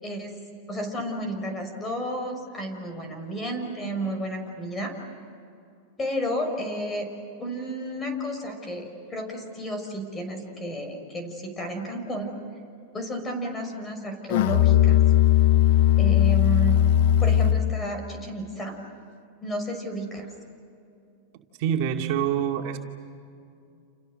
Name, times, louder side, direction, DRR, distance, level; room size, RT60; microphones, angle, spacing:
voice 1, 0.0-0.4 0.7-4.9 6.0-7.1 7.4-12.3 12.9-15.0 16.0-16.8 17.2-18.8 19.4-20.3, equal, 20° left, 5 dB, 6.2 m, -32 dB
Musical instrument, 14.3-17.8, left 12 dB, 65° left, 0.7 m, -18 dB
voice 2, 21.6-22.8, right 9 dB, 55° right, 1 dB, 2.4 m, -25 dB
30.0 x 29.0 x 6.6 m, 2.5 s
supercardioid pair, 125°, 0 cm